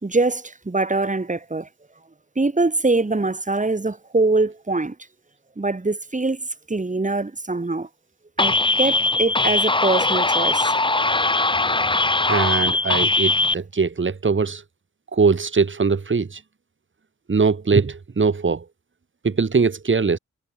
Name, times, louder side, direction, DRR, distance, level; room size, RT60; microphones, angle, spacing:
voice 1, 0.0-1.7 2.4-5.0 5.6-7.9 8.4-10.7, right 3 dB, 25° right, 2.3 m, -23 dB
sound 1, 8.4-13.5, left 2 dB, 15° left, 0.9 m, -20 dB
voice 2, 12.3-14.6 15.1-16.4 17.3-18.7 19.2-20.2, right 4 dB, 40° right, 1.8 m, -21 dB
cardioid pair, 50°, 30 cm